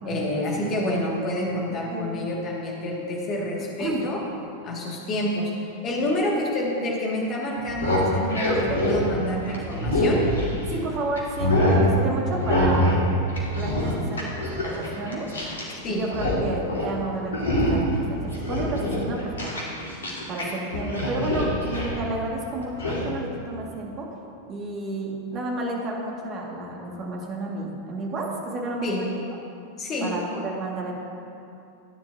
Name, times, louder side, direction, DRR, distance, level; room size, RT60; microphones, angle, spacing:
voice 1, 0.0-4.2 4.6-5.5 5.8-10.2 15.8-16.0 28.8-29.0 29.8-30.1, left 1 dB, 30° left, -2 dB, 2.3 m, -28 dB
sound 1, 7.6-10.8 11.2-11.8 12.4-13.0 13.3-15.7 16.0-16.4 16.7-16.9 17.3-17.9 18.3-20.4 20.7-22.0 22.8-23.0, left 1 dB, 70° left, 2.3 m, -24 dB
voice 2, 10.7-13.0 13.6-15.3 15.9-19.6 20.3-24.1 24.5-29.0 30.0-30.9, right 2 dB, 30° right, -1 dB, 2.2 m, -31 dB
16.5 x 10.0 x 2.9 m, 2.6 s
figure-of-eight pair, 90°, 0 cm